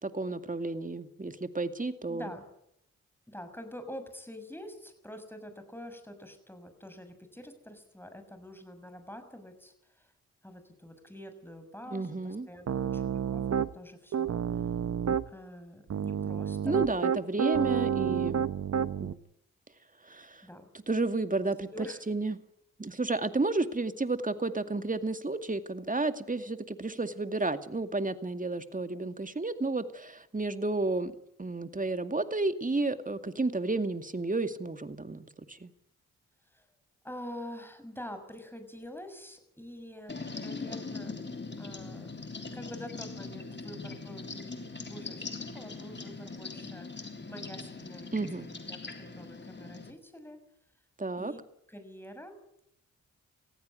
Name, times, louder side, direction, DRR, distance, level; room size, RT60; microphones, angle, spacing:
voice 1, 0.0-2.3 11.9-12.5 16.6-18.5 19.0-19.2 20.0-20.4 20.9-22.4 22.8-31.1 31.4-35.7 48.1-48.5 51.0-51.3, right 3 dB, 25° right, 10 dB, 2.3 m, -32 dB
voice 2, 2.1-2.4 3.3-10.1 10.4-14.7 15.3-16.8 20.4-20.7 21.7-22.0 36.5-36.7 37.0-41.1 41.6-42.1 42.5-50.4 51.2-51.4 51.7-52.6, left 1 dB, 5° left, 8 dB, 6.5 m, -46 dB
Piano, 12.7-13.7 14.1-15.3 15.9-19.1, right 8 dB, 50° right, 1.0 m, -29 dB
sound 1, 40.1-49.9, left 3 dB, 35° left, 3.4 m, -41 dB
19.5 x 15.5 x 9.8 m, 0.74 s
hypercardioid pair, 40°, 33 cm